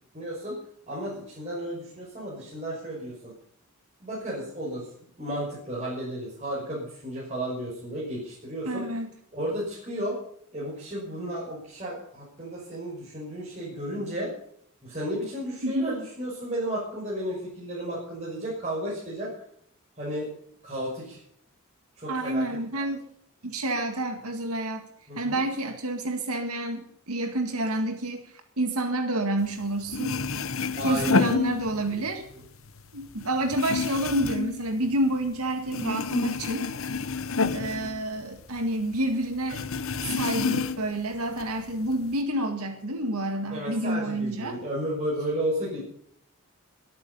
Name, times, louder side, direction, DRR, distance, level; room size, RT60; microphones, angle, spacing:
voice 1, 0.1-0.5 0.9-3.3 4.0-4.9 5.2-8.8 9.3-10.2 10.5-14.3 14.8-19.3 20.0-20.3 20.6-21.2 22.0-22.4 22.7-22.9 25.1-25.4 30.8-31.3 31.6-32.0 32.3-32.4 43.5-45.8, right 1 dB, 30° right, -6 dB, 6.0 m, -33 dB
voice 2, 8.6-9.1 15.6-15.9 22.1-23.0 23.4-24.8 25.2-30.2 30.8-32.2 32.9-36.7 37.5-39.6 40.0-44.6, right 1 dB, 90° right, 5 dB, 2.0 m, -29 dB
sound 1, 29.6-29.7 29.9-32.1 32.5-35.4 35.7-38.7 38.9-39.0 39.5-41.0 41.4-42.1, left 4 dB, 65° left, 0.9 m, -29 dB
23.0 x 9.1 x 5.6 m, 0.66 s
head